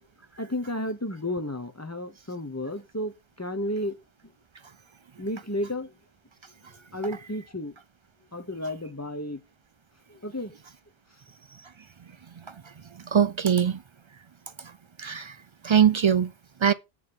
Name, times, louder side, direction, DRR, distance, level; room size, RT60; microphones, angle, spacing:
voice 1, 0.4-4.0 4.2-4.3 5.2-6.0 6.7-7.8 8.3-9.4 10.1-10.6, left 1 dB, 15° left, 0.7 m, -32 dB
voice 2, 13.1-13.8 15.0-15.4 15.6-16.3 16.6-16.7, right 8 dB, 55° right, 0.3 m, -21 dB
7.8 x 4.8 x 5.3 m
omnidirectional pair, 1.1 m